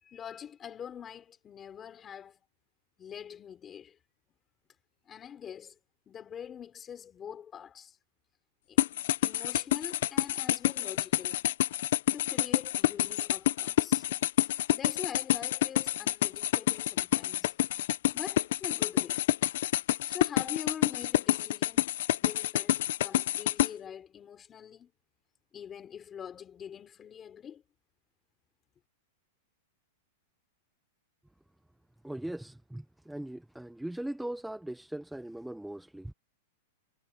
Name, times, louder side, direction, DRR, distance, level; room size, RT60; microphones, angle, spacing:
voice 1, 0.0-2.4 3.0-4.0 5.0-5.8 6.1-8.0 8.7-8.8 9.2-11.4 12.1-14.1 14.4-17.6 18.1-19.3 20.1-21.9 22.2-24.9 25.5-27.6, left 8 dB, 20° left, 3.8 m, -44 dB
sound 1, 8.8-23.7, left 14 dB, 60° left, 0.7 m, -28 dB
voice 2, 32.0-36.1, right 1 dB, ahead, 0.6 m, -39 dB
supercardioid pair, 160°, 0 cm